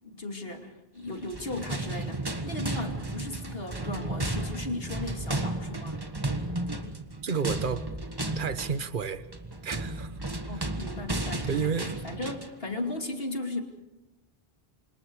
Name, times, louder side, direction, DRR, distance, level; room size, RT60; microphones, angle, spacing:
voice 1, 0.0-6.0 10.5-13.6, left 2 dB, 70° left, 4 dB, 3.1 m, -36 dB
sound 1, 1.2-12.6, right 2 dB, 20° right, 1.6 m, -34 dB
voice 2, 7.2-7.9 8.3-9.3 9.6-10.2 10.5-10.7 11.4-11.9, right 6 dB, 55° right, 12 dB, 1.3 m, -31 dB
28.5 x 26.0 x 4.8 m, 1.0 s
omnidirectional pair, 1.0 m